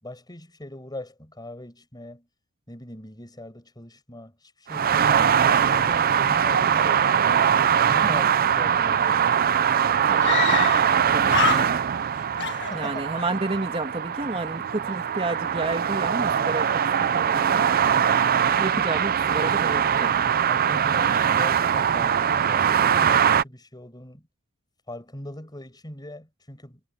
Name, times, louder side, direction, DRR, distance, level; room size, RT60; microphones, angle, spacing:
voice 1, 0.0-2.3 2.7-7.1 7.9-9.7 12.4-13.0 20.5-24.3 24.9-26.8, left 1 dB, 20° left, 6.2 m, -41 dB
sound 1, 4.7-23.4, right 8 dB, 40° right, 0.5 m, -22 dB
Screaming, 9.1-9.2 9.4-9.5 10.2-11.0 11.3-12.1 12.4-13.3, left 8 dB, 55° left, 1.9 m, -27 dB
voice 2, 10.1-11.8 12.7-17.7 18.5-20.1, right 2 dB, 25° right, 2.8 m, -31 dB
head